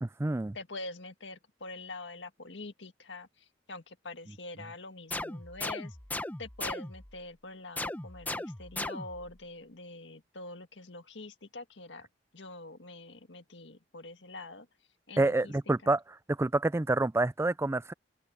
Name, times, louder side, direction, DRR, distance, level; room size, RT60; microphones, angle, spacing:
voice 1, 0.0-0.6 15.2-16.0 16.3-17.9, right 2 dB, 15° right, 0.4 m, -28 dB
voice 2, 0.5-6.0 6.4-12.1 12.3-14.7 15.1-15.5 15.8-15.9, left 2 dB, 75° left, 1.8 m, -45 dB
sound 1, 5.1-7.2 7.8-9.3, left 2 dB, 10° left, 0.9 m, -37 dB
open air
head